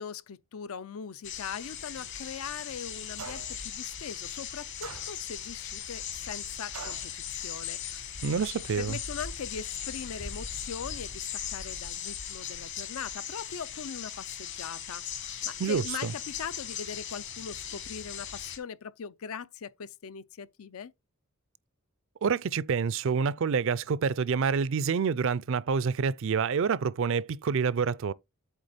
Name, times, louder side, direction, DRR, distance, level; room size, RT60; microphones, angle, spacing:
voice 1, 0.0-8.2 8.8-20.9, left 7 dB, 70° left, 0.5 m, -41 dB
sound 1, 1.2-18.6, left 8 dB, 55° left, 1.7 m, -38 dB
sound 2, 3.2-3.7 4.8-5.5 6.7-7.1, right 6 dB, 90° right, 0.9 m, -43 dB
voice 2, 8.2-9.0 15.6-16.1 22.2-28.1, right 6 dB, 60° right, 0.4 m, -27 dB
8.2 x 3.4 x 5.0 m
head